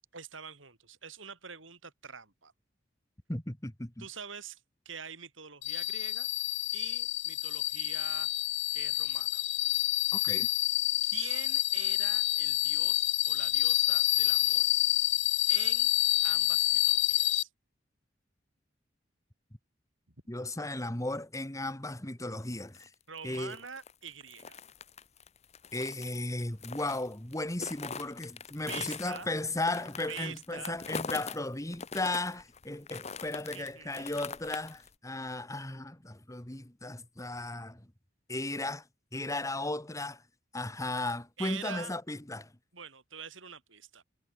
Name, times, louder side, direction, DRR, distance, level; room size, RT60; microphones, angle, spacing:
voice 1, 0.1-2.5 4.0-6.3 6.7-8.3 8.7-9.4 10.1-10.2 11.0-14.7 15.5-15.9 16.2-17.5 20.1-20.2 23.1-24.6 28.7-29.3 30.1-30.8 33.5-34.1 41.4-41.9 42.7-44.0, right 7 dB, 90° right, 5.3 m, -45 dB
voice 2, 3.3-4.0 10.1-10.5 20.3-22.9 23.2-23.6 25.7-37.9 38.3-38.9 39.1-40.2 40.5-42.5, left 2 dB, 15° left, 1.8 m, -35 dB
sound 1, 5.6-17.4, left 18 dB, 70° left, 0.6 m, -28 dB
sound 2, 22.5-31.4 31.7-34.9, left 5 dB, 35° left, 1.0 m, -42 dB
head